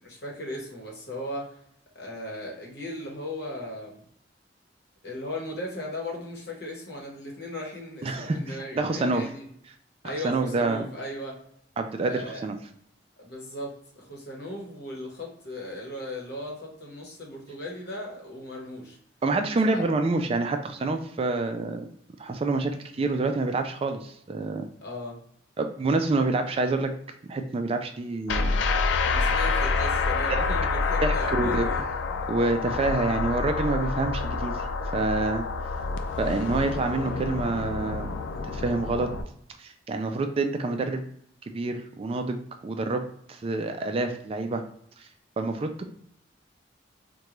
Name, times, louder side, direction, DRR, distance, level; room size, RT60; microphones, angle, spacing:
voice 1, 0.0-1.6 1.9-4.0 5.0-9.4 10.0-11.4 12.0-12.4 13.2-19.0 19.7-19.8 24.8-25.2 29.0-31.8 32.1-32.2, left 1 dB, 65° left, -1 dB, 1.0 m, -37 dB
voice 2, 8.0-9.2 10.0-10.9 11.8-12.6 19.2-21.9 22.2-24.7 25.6-26.9 27.3-28.5 30.3-30.4 31.0-31.7 32.3-34.6 34.9-35.4 36.2-38.1 38.5-39.1 39.6-41.0 41.5-42.4 42.6-43.0 43.3-44.6 45.0-45.1 45.4-45.9, right 3 dB, 30° right, 6 dB, 0.3 m, -27 dB
sound 1, 28.3-39.2, left 4 dB, 80° left, 0.3 m, -27 dB
3.7 x 2.2 x 3.0 m, 0.67 s
head